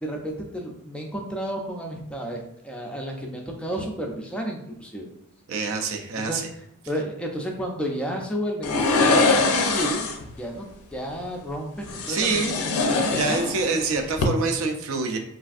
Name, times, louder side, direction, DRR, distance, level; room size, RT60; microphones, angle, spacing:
voice 1, 0.0-5.1 6.3-6.4 6.9-10.1 10.4-10.6 10.9-13.4, equal, 5° left, 0 dB, 0.3 m, -32 dB
voice 2, 5.5-6.5 12.1-12.5 13.1-15.2, right 4 dB, 65° right, 4 dB, 0.4 m, -26 dB
sound 1, 8.6-10.3 11.9-13.8 14.1-14.3, left 3 dB, 75° left, 0.5 m, -23 dB
3.2 x 2.4 x 2.4 m, 0.78 s
head